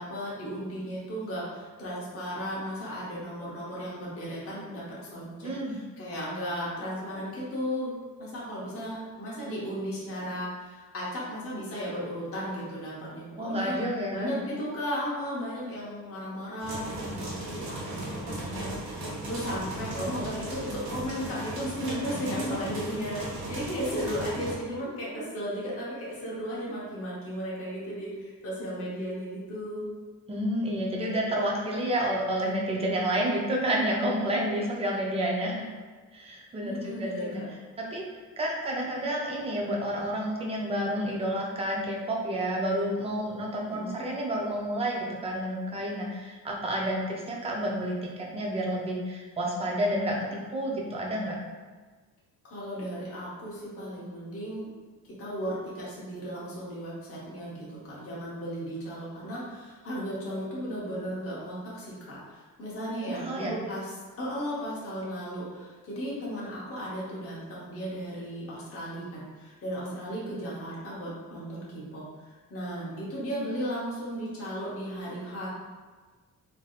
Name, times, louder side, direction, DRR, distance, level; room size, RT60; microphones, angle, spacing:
voice 1, 0.0-4.8 5.1-7.9 8.2-13.8 14.1-29.8 36.6-37.5 43.7-44.0 52.4-54.7 55.2-75.5, equal, 40° left, -7 dB, 0.8 m, -35 dB
voice 2, 5.4-5.8 13.4-14.4 30.3-35.7 36.1-37.4 37.8-38.1 38.4-51.4 63.0-63.5, right 1 dB, 20° right, -2 dB, 0.3 m, -30 dB
sound 1, 16.6-24.5, right 1 dB, 90° right, 1.1 m, -36 dB
3.3 x 2.6 x 2.3 m, 1.4 s
cardioid pair, 170°, 36 cm